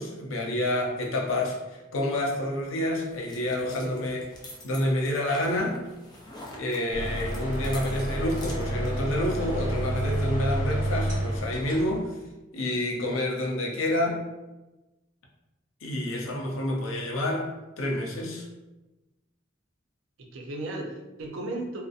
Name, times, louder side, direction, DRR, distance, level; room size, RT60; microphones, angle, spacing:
voice 1, 0.0-4.2 4.6-5.8 6.5-12.2 12.5-14.2 15.8-17.5 17.8-18.5, left 1 dB, 85° left, 0 dB, 0.5 m, -28 dB
sound 1, 2.6-10.1, left 1 dB, 20° left, 0.4 m, -48 dB
voice 2, 3.7-4.1 20.2-21.8, right 2 dB, 80° right, 0 dB, 0.5 m, -36 dB
sound 2, 6.9-12.0, right 1 dB, 40° right, 0.9 m, -29 dB
2.6 x 2.0 x 2.4 m, 1.1 s
head